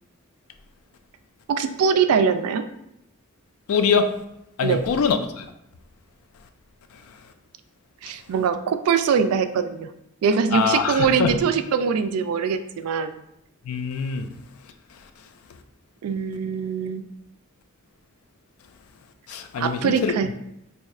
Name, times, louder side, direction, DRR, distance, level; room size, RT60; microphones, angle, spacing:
voice 1, 1.5-2.7 4.6-4.8 8.0-9.9 10.2-13.1 16.0-17.0 19.6-20.3, right 6 dB, 85° right, 0.3 m, -22 dB
voice 2, 3.7-4.1 4.6-5.5 10.5-11.4 13.7-14.3 19.3-20.1, left 5 dB, 85° left, 0.4 m, -23 dB
2.6 x 2.4 x 4.1 m
head